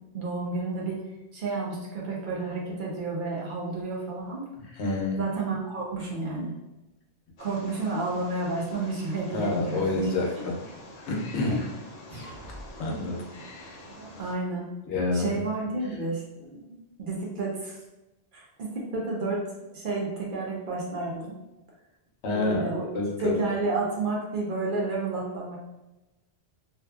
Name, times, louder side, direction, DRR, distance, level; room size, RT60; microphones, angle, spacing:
voice 1, 0.1-1.0 1.3-4.4 5.2-6.5 7.4-9.9 11.5-11.6 13.9-14.7 15.1-17.8 18.3-19.4 19.7-21.3 22.3-22.9 23.2-25.6, right 3 dB, 55° right, -3 dB, 0.7 m, -31 dB
voice 2, 4.6-5.2 9.3-10.6 11.1-11.6 12.8-13.2 13.6-13.7 14.9-15.3 22.2-22.7 22.9-23.5, left 2 dB, 80° left, -1 dB, 0.9 m, -28 dB
Wild animals, 7.4-14.3, left 1 dB, 50° left, 0.5 m, -46 dB
sound 1, 12.1-13.1, equal, 25° right, 0.9 m, -44 dB
2.6 x 2.4 x 2.3 m, 1.0 s
omnidirectional pair, 1.1 m